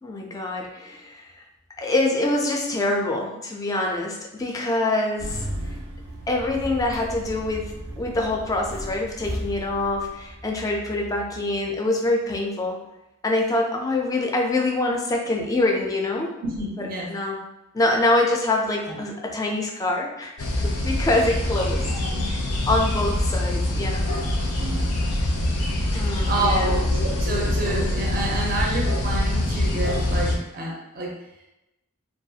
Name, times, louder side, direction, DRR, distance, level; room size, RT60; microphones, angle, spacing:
voice 1, 0.0-1.4 1.8-5.4 6.3-12.8 13.2-16.3 17.1-17.4 17.7-20.5 20.8-21.9 22.7-24.1 25.9-26.8, left 2 dB, 15° left, 1 dB, 0.3 m, -25 dB
Engine starting, 5.2-10.7, right 1 dB, 90° right, 0.6 m, -36 dB
voice 2, 16.4-17.1 18.8-19.0 21.8-22.3 24.6-25.2 26.2-31.1, right 2 dB, 45° right, -1 dB, 0.5 m, -29 dB
sound 1, 20.4-30.4, left 1 dB, 90° left, 0.5 m, -24 dB
2.4 x 2.3 x 2.7 m, 0.92 s
head